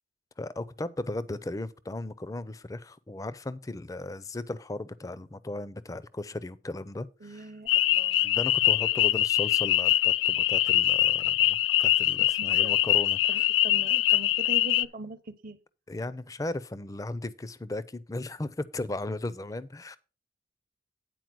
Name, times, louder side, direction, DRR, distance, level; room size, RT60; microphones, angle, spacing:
voice 1, 0.4-7.5 8.2-13.5 15.9-20.0, left 2 dB, 20° left, 0.4 m, -36 dB
voice 2, 7.2-8.3 12.3-12.8 13.3-15.6, right 2 dB, 50° right, 0.7 m, -42 dB
sound 1, 7.7-14.8, left 14 dB, 80° left, 0.3 m, -23 dB
9.3 x 4.5 x 6.0 m
head